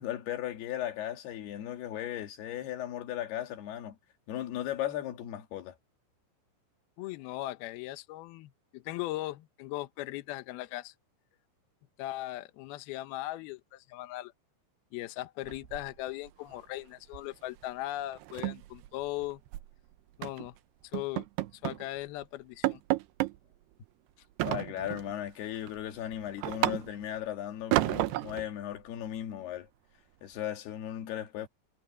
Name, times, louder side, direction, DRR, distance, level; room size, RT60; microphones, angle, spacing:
voice 1, 0.0-4.0 4.3-5.8 24.4-29.7 30.2-31.5, left 11 dB, 60° left, 3.5 m, -36 dB
voice 2, 7.0-10.9 12.0-14.3 14.9-19.4 20.2-20.5 20.9-21.3 21.5-22.8, left 16 dB, 80° left, 2.2 m, -38 dB
sound 1, 15.5-16.3 16.6-16.8 17.1-17.3 17.6-17.7 18.1-19.7 20.2-20.5 20.9-21.9 22.2-22.3 22.6-23.4 24.4-25.1 25.6-27.2 27.7-28.5, right 17 dB, 80° right, 2.4 m, -32 dB
omnidirectional pair, 5.6 m